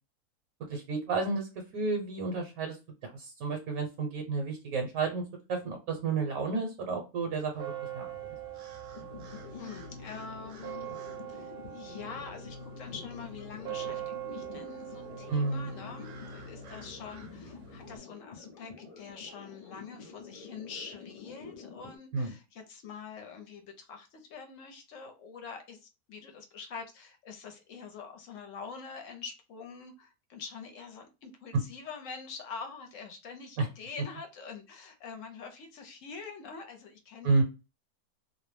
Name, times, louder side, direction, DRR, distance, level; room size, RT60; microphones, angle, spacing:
voice 1, 0.7-2.8 3.0-5.2 5.5-8.1 15.3-15.7 22.1-22.3 33.6-33.7 37.2-37.4, right 4 dB, 70° right, 3 dB, 1.1 m, -31 dB
sound 1, 7.5-18.0, right 8 dB, 55° right, 0.7 m, -43 dB
sound 2, 8.9-22.0, left 5 dB, 45° left, 0.5 m, -48 dB
voice 2, 9.5-11.0 11.3-37.4, left 5 dB, 70° left, 5 dB, 0.9 m, -45 dB
2.5 x 2.0 x 3.1 m, 0.29 s
omnidirectional pair, 1.6 m